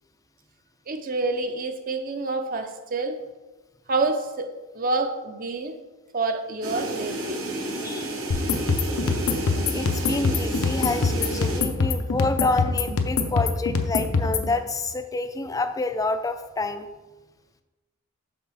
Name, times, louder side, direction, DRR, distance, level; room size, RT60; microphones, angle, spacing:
voice 1, 0.9-3.2 3.9-5.8 6.1-7.4, right 3 dB, 40° right, 7 dB, 0.6 m, -28 dB
sound 1, 6.6-11.6, right 1 dB, 75° right, 1.2 m, -31 dB
voice 2, 7.8-8.4 9.7-16.9, left 3 dB, 15° left, 9 dB, 0.4 m, -28 dB
sound 2, 8.3-14.5, left 4 dB, 85° left, 0.7 m, -24 dB
5.9 x 4.1 x 6.2 m, 1.2 s
head